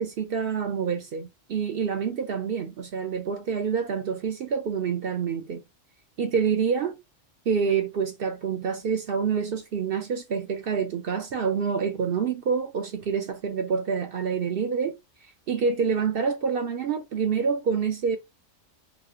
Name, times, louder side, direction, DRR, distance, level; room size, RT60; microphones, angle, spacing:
voice 1, 0.0-5.6 6.2-7.0 7.5-14.9 15.5-18.2, right 6 dB, 60° right, 0.6 m, -27 dB
3.0 x 2.8 x 2.4 m
omnidirectional pair, 1.3 m